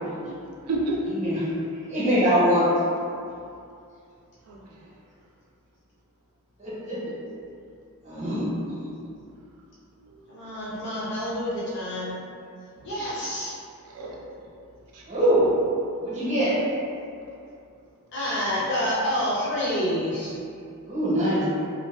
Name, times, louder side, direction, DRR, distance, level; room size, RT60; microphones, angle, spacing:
voice 1, 0.6-1.1 4.5-4.9 10.0-10.3 12.7-12.9 13.8-14.7 14.9-15.1 15.4-15.5, right 2 dB, 85° right, -2 dB, 0.4 m, -32 dB
voice 2, 1.9-2.7 6.6-7.2 8.0-8.9 15.1-15.5 16.0-16.6 20.8-21.5, equal, 30° right, -9 dB, 0.7 m, -23 dB
voice 3, 10.3-12.1 12.8-13.6 18.1-20.3, equal, 55° left, -9 dB, 0.6 m, -28 dB
2.4 x 2.2 x 2.3 m, 2.4 s
head